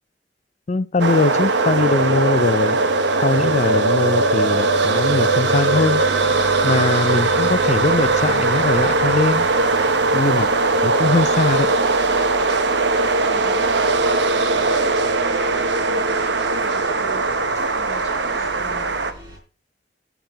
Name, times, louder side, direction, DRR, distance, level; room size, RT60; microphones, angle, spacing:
voice 1, 0.7-2.8 3.2-6.0 6.6-9.5 10.1-10.5 10.8-11.7, left 3 dB, 40° left, 0.4 m, -21 dB
sound 1, 1.0-19.1, right 3 dB, 85° right, 1.0 m, -19 dB
sound 2, 4.9-19.4, equal, 25° right, 4.1 m, -42 dB
voice 2, 13.3-18.9, equal, 20° left, 2.8 m, -42 dB
10.5 x 7.4 x 4.6 m
head